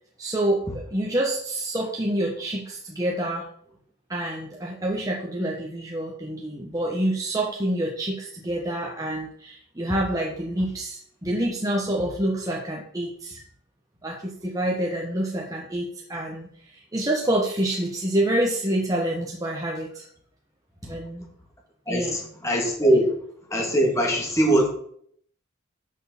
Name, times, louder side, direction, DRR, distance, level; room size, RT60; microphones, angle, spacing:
voice 1, 0.2-3.4 4.1-13.4 14.0-16.5 16.9-20.0 20.8-21.3 21.9-22.2 22.9-23.0, right 1 dB, 15° right, -2 dB, 1.2 m, -27 dB
voice 2, 21.9-23.1 23.5-24.7, right 1 dB, 15° left, 0 dB, 2.2 m, -21 dB
6.5 x 6.5 x 7.2 m, 0.64 s
head